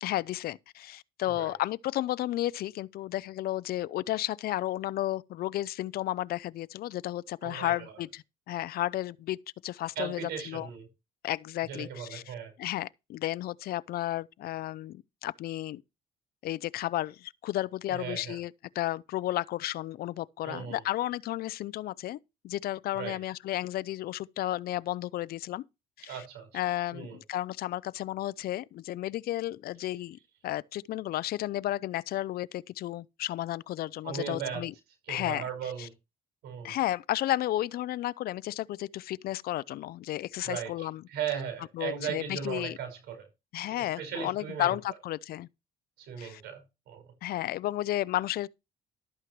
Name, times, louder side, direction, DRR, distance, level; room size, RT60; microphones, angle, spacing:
voice 1, 0.0-9.4 9.6-10.7 11.2-15.8 16.4-22.2 22.4-25.6 26.0-26.2 26.5-30.2 30.4-34.7 35.1-35.4 35.8-35.9 36.6-41.0 41.7-42.8 43.5-45.5 46.2-46.4 47.2-48.5, left 14 dB, 65° left, 0.6 m, -33 dB
voice 2, 7.4-7.9 10.0-10.9 11.7-12.5 17.9-18.4 20.4-20.8 22.9-23.2 26.1-26.6 26.9-27.2 34.0-34.7 35.1-35.9 36.4-36.8 40.4-43.3 43.6-44.7 46.0-46.6 46.9-47.1, right 8 dB, 80° right, 5.4 m, -37 dB
12.5 x 8.9 x 3.1 m
cardioid pair, 110°, 17 cm